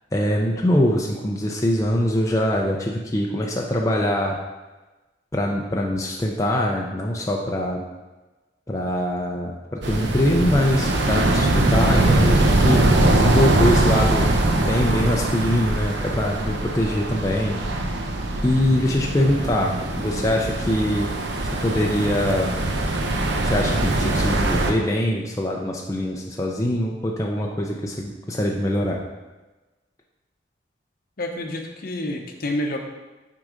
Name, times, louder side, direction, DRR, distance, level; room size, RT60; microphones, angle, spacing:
voice 1, 0.1-4.4 5.3-7.8 8.7-14.3 14.6-17.6 18.4-21.1 21.6-22.6 23.4-29.0, left 1 dB, 15° left, -1 dB, 0.4 m, -23 dB
sound 1, 9.8-24.7, right 2 dB, 70° right, 0.7 m, -22 dB
voice 2, 31.2-32.8, left 1 dB, 50° left, 3 dB, 0.8 m, -29 dB
6.2 x 3.8 x 5.0 m, 1.2 s
head